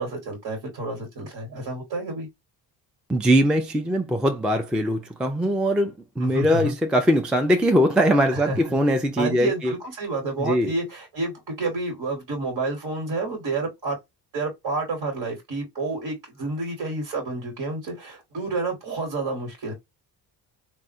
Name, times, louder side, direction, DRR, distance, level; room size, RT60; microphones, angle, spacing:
voice 1, 0.0-2.3 6.2-6.7 8.3-8.8 9.2-14.0 14.3-19.7, right 3 dB, 55° right, 1.2 m, -29 dB
voice 2, 3.1-9.7 10.4-10.7, equal, ahead, 0.3 m, -21 dB
3.4 x 2.1 x 2.5 m
cardioid pair, 85°, 44 cm